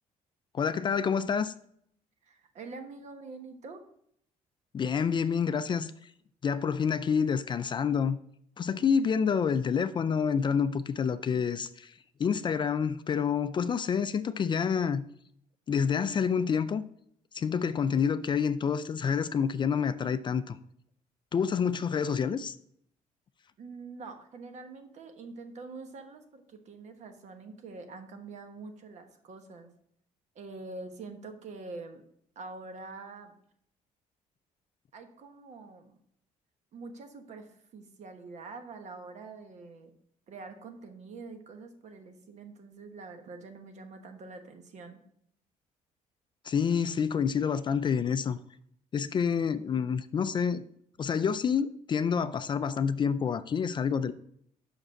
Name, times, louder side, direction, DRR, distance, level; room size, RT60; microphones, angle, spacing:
voice 1, 0.5-1.5 4.7-5.9 6.4-8.2 8.6-11.9 12.2-15.0 15.7-16.8 17.3-20.6 21.3-22.6 46.4-48.4 48.9-50.6 51.0-54.1, left 6 dB, 35° left, 0.4 m, -28 dB
voice 2, 2.2-3.8 23.6-29.7 30.3-32.0 32.3-33.3 34.9-36.0 36.7-39.9 40.3-45.0, right 3 dB, 55° right, 1.2 m, -45 dB
6.0 x 5.0 x 6.3 m
cardioid pair, 105°, 14 cm